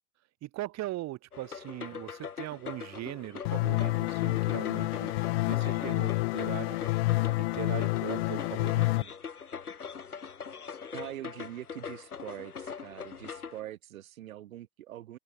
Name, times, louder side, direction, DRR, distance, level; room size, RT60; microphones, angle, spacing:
voice 1, 0.4-5.1 5.5-6.8 7.3-9.1, right 16 dB, 35° right, 4.7 m, -40 dB
sound 1, 1.3-13.6, left 6 dB, 80° left, 7.1 m, -42 dB
sound 2, 3.5-9.0, left 21 dB, 45° left, 0.5 m, -28 dB
voice 2, 10.9-15.2, right 13 dB, 65° right, 2.5 m, -43 dB
open air
figure-of-eight pair, 95°, 44 cm